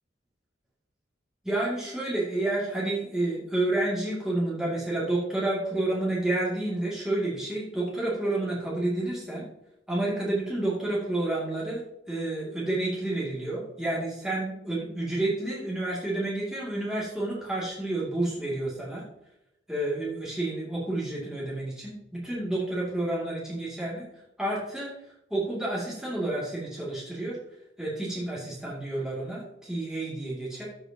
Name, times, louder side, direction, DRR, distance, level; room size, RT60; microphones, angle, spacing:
voice 1, 1.4-9.5 9.9-11.8 12.1-19.0 19.7-24.1 24.4-24.9 25.3-27.4 27.8-30.7, right 2 dB, 5° right, -6 dB, 2.6 m, -30 dB
13.5 x 6.5 x 2.9 m, 0.84 s
head